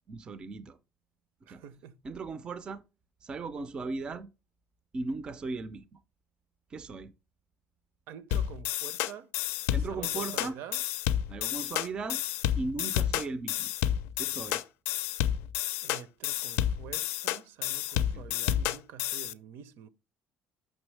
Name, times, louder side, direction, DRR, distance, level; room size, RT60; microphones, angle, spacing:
voice 1, 0.1-0.8 1.5-1.6 2.0-2.8 3.2-4.3 4.9-6.0 6.7-7.1 9.7-10.6 11.3-12.2 12.6-13.7 14.2-14.6 18.1-18.4, right 3 dB, 20° right, 0.4 m, -37 dB
voice 2, 1.5-2.0 8.1-9.3 9.9-10.8 15.8-19.9, right 8 dB, 65° right, 0.6 m, -47 dB
sound 1, 8.3-19.3, left 11 dB, 75° left, 0.4 m, -30 dB
6.7 x 6.1 x 3.2 m
cardioid pair, 170°, 4 cm